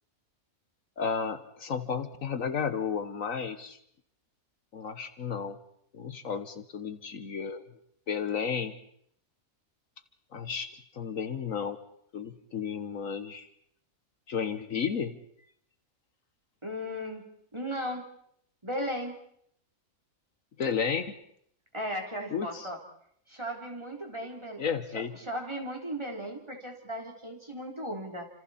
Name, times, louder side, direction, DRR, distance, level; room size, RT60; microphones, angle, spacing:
voice 1, 1.0-3.8 4.7-5.6 5.9-7.6 8.1-8.7 10.3-10.7 10.9-11.8 12.1-13.5 14.3-15.1 20.6-21.1 22.3-22.7 24.6-25.1, left 6 dB, 65° left, 10 dB, 1.5 m, -32 dB
voice 2, 16.6-17.2 17.5-18.0 18.6-19.1 21.7-22.8 23.3-24.6 24.9-28.3, equal, 20° right, 1 dB, 3.5 m, -36 dB
29.5 x 27.0 x 4.3 m, 0.69 s
omnidirectional pair, 1.5 m